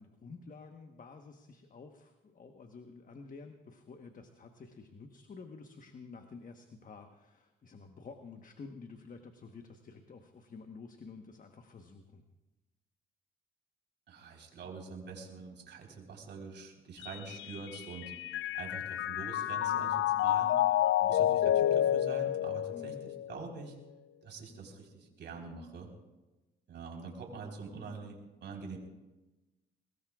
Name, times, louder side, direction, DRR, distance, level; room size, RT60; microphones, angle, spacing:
voice 1, 0.0-12.2 22.7-23.0, left 4 dB, 40° left, 5 dB, 1.3 m, -50 dB
voice 2, 14.1-18.1 18.5-20.6 21.0-23.8 24.2-25.9 26.7-28.8, right 4 dB, 65° right, 0 dB, 4.2 m, -45 dB
Mallet percussion, 17.0-23.5, left 12 dB, 75° left, 0.4 m, -30 dB
22.5 x 20.0 x 2.5 m, 1.1 s
cardioid pair, 90°, 20 cm